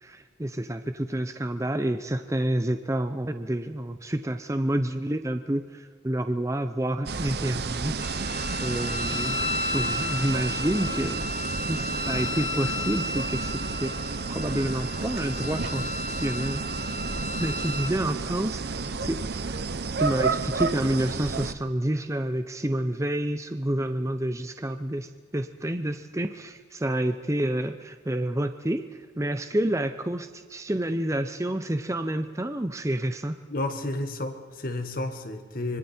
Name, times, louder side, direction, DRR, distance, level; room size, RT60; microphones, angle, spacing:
voice 1, 0.0-8.0 8.6-11.3 11.7-13.9 14.3-16.6 17.4-19.6 20.0-28.9 29.2-33.4, right 1 dB, 15° right, 9 dB, 0.6 m, -29 dB
sound 1, 7.1-21.5, right 4 dB, 50° right, 0.7 m, -31 dB
Wind instrument woodwind instrument, 8.0-17.9, left 3 dB, 25° left, 1.2 m, -33 dB
voice 2, 33.5-35.8, left 2 dB, 45° left, 6 dB, 1.7 m, -31 dB
25.5 x 24.0 x 4.4 m, 1.5 s
head